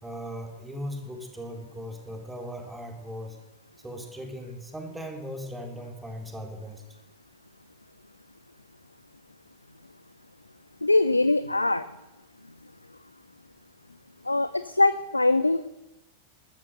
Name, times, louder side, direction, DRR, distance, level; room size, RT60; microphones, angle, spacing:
voice 1, 0.0-3.4 3.8-6.8, equal, 10° right, 2 dB, 3.4 m, -38 dB
voice 2, 10.8-11.8 14.3-15.7, left 2 dB, 85° left, 14 dB, 0.5 m, -22 dB
14.5 x 12.5 x 6.7 m, 1.0 s
figure-of-eight pair, 90°, 0 cm